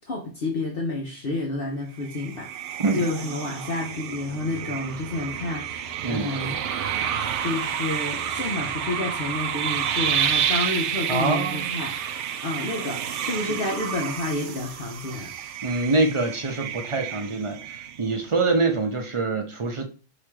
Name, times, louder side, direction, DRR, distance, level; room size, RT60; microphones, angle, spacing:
voice 1, 0.1-2.7 2.9-6.6 7.4-12.0 12.4-15.3, left 2 dB, 55° left, 0.9 m, -30 dB
sound 1, 2.0-18.3, right 8 dB, 75° right, 0.9 m, -30 dB
voice 2, 11.1-11.7 15.6-19.8, right 3 dB, 40° right, 0.4 m, -25 dB
3.2 x 3.0 x 4.6 m
omnidirectional pair, 1.3 m